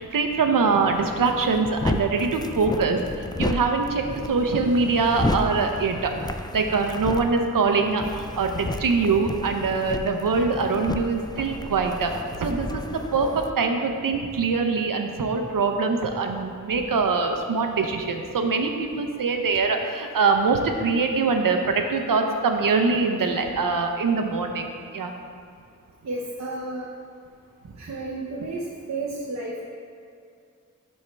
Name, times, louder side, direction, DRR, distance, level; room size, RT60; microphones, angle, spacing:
voice 1, 0.0-6.1 6.5-12.1 12.4-25.1, right 4 dB, 90° right, 4 dB, 0.7 m, -23 dB
sound 1, 0.9-13.5, left 2 dB, 15° left, 0.3 m, -32 dB
voice 2, 26.0-26.9 27.8-28.6 28.9-29.7, right 2 dB, 55° right, -3 dB, 0.8 m, -32 dB
12.0 x 4.4 x 3.3 m, 2.4 s
cardioid pair, 50°, 32 cm